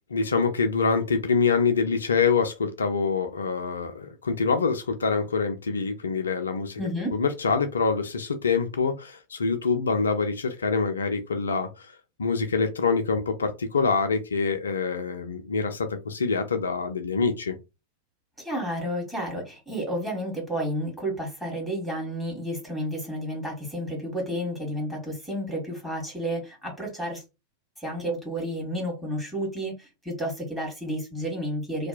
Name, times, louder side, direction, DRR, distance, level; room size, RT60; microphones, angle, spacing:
voice 1, 0.1-6.8 7.1-11.9 12.2-17.6, left 5 dB, 70° left, 0.4 m, -25 dB
voice 2, 6.8-7.1 18.4-27.2 27.8-31.9, equal, 5° right, 1.4 m, -31 dB
2.7 x 2.1 x 2.5 m
figure-of-eight pair, 90°, 0 cm